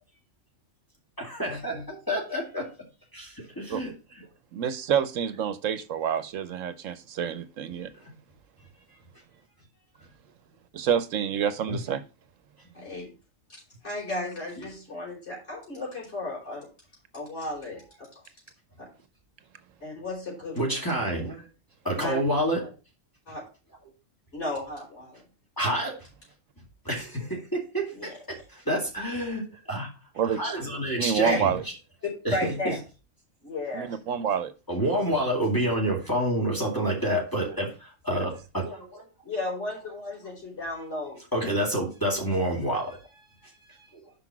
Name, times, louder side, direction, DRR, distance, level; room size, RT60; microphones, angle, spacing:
voice 1, 1.2-2.6 3.1-3.9 11.7-11.8 20.6-21.5 21.8-22.7 25.6-25.9 26.8-29.9 30.4-31.5 32.2-32.5 34.7-39.0 41.3-43.0, right 1 dB, 15° left, -2 dB, 2.4 m, -28 dB
voice 2, 4.5-7.9 10.7-12.0 30.2-30.6 31.0-31.6 33.7-34.5 38.1-38.2, right 8 dB, 75° right, 12 dB, 1.1 m, -28 dB
voice 3, 12.7-13.1 13.8-16.7 17.1-18.1 18.8-18.9 19.8-20.8 21.9-22.2 23.3-23.4 24.3-25.2 27.9-28.1 31.2-31.4 32.3-32.8 33.4-34.0 39.2-41.2, left 2 dB, 55° left, -6 dB, 4.7 m, -34 dB
6.0 x 5.6 x 5.9 m, 0.32 s
omnidirectional pair, 1.4 m